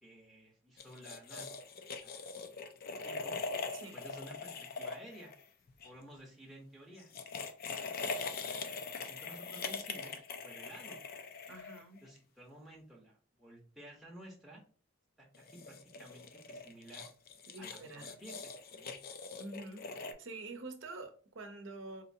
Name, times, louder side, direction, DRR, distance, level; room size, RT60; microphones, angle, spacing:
voice 1, 0.0-1.6 2.0-2.5 3.0-3.4 3.9-5.3 5.8-7.1 8.0-11.0 12.0-14.6 15.2-17.1 17.6-19.0 19.4-19.5, right 1 dB, ahead, 0.7 m, -54 dB
sound 1, 0.8-5.9 7.0-12.2 15.3-20.1, left 4 dB, 45° left, 0.4 m, -42 dB
voice 2, 11.5-12.0 17.5-18.1 19.4-19.9 20.2-22.0, right 2 dB, 65° right, 0.7 m, -46 dB
4.0 x 2.6 x 2.6 m
head